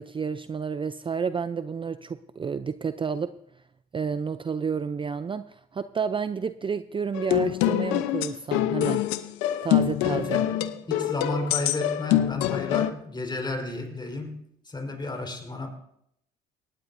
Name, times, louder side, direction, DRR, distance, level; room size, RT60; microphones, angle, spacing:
voice 1, 0.0-3.3 3.9-9.0 9.6-10.4, right 6 dB, 25° right, 12 dB, 0.5 m, -30 dB
sound 1, 7.1-12.9, left 13 dB, 85° left, 0.7 m, -25 dB
voice 2, 10.0-14.4 14.6-15.7, left 2 dB, 20° left, 3 dB, 4.2 m, -33 dB
18.5 x 16.0 x 2.6 m, 0.76 s
supercardioid pair, 70°, 20 cm